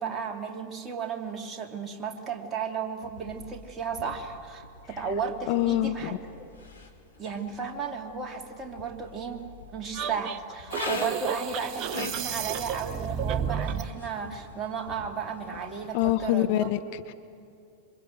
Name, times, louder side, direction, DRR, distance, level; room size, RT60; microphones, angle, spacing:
voice 1, 0.0-6.5 7.2-16.7, right 6 dB, 20° right, 2 dB, 2.8 m, -34 dB
sound 1, 3.0-16.1, left 3 dB, 80° left, 2.8 m, -43 dB
voice 2, 5.5-6.2 15.9-17.1, left 14 dB, 50° left, 8 dB, 1.0 m, -26 dB
sound 2, 9.9-13.9, right 8 dB, 40° right, 0.8 m, -32 dB
26.5 x 24.0 x 7.9 m, 2.5 s
figure-of-eight pair, 90°, 0 cm